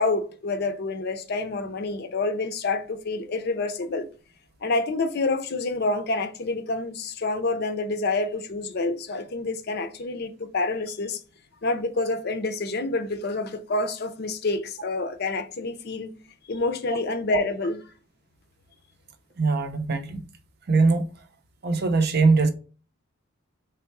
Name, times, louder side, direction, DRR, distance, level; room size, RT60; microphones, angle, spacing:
voice 1, 0.0-4.1 4.6-11.2 11.6-16.1 16.5-17.8, left 3 dB, 50° left, 0.5 m, -27 dB
voice 2, 19.4-20.2 20.7-21.1 21.6-22.5, right 3 dB, 50° right, 0.6 m, -21 dB
3.6 x 3.3 x 4.5 m
head